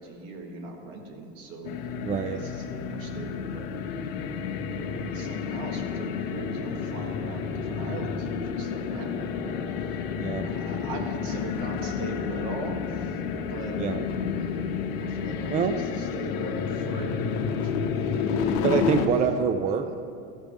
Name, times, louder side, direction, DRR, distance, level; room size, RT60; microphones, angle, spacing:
voice 1, 0.0-1.8 2.3-3.7 4.7-10.0 10.4-13.8 14.4-17.2 17.6-17.7 18.2-18.5 19.7-20.0, right 3 dB, 70° right, 2 dB, 1.7 m, -40 dB
sound 1, 1.6-19.1, left 6 dB, 75° left, 0.9 m, -30 dB
voice 2, 2.0-2.4 10.1-10.5 13.8-14.1 15.5-15.8 18.6-20.0, right 6 dB, 25° right, 9 dB, 0.3 m, -25 dB
13.5 x 5.1 x 5.2 m, 2.3 s
supercardioid pair, 125°, 30 cm